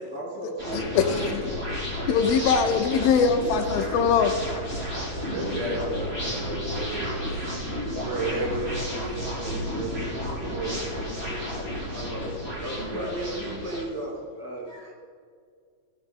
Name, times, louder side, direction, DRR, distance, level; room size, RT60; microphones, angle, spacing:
voice 1, 0.0-1.2 7.0-7.1 12.6-14.9, right 1 dB, 5° left, -5 dB, 1.4 m, -35 dB
sound 1, 0.6-13.8, equal, 30° right, 2.3 m, -32 dB
voice 2, 0.7-1.4 2.1-4.3, left 6 dB, 80° left, 7 dB, 2.3 m, -22 dB
voice 3, 5.2-7.5 7.9-13.5 14.7-14.9, right 1 dB, 70° right, -4 dB, 4.5 m, -34 dB
15.0 x 9.6 x 3.7 m, 2.1 s
omnidirectional pair, 4.4 m